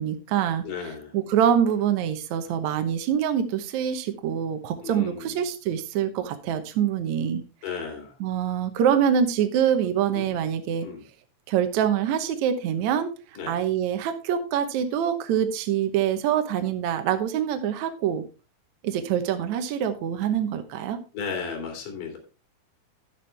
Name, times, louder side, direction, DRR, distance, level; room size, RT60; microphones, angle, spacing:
voice 1, 0.0-0.6 1.1-7.4 8.2-10.9 11.5-13.1 13.5-18.2 18.8-21.0, right 9 dB, 70° right, 8 dB, 1.8 m, -25 dB
voice 2, 0.6-1.1 4.8-5.4 7.6-8.1 10.1-10.5 10.8-11.0 13.4-13.6 21.1-22.2, left 5 dB, 60° left, 2 dB, 4.0 m, -34 dB
11.0 x 8.6 x 3.3 m, 0.32 s
omnidirectional pair, 4.4 m